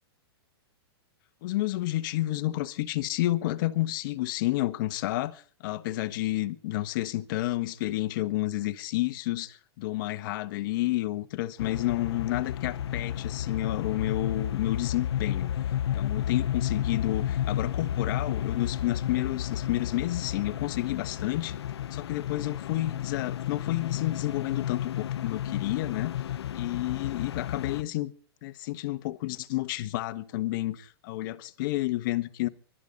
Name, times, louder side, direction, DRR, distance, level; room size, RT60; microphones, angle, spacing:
voice 1, 1.4-15.5 15.9-21.5 21.9-26.2 26.5-28.1 28.4-32.5, left 16 dB, 50° left, 1.2 m, -30 dB
sound 1, 11.6-27.8, left 10 dB, 75° left, 0.9 m, -32 dB
25.5 x 12.5 x 4.0 m
hypercardioid pair, 135°, 14 cm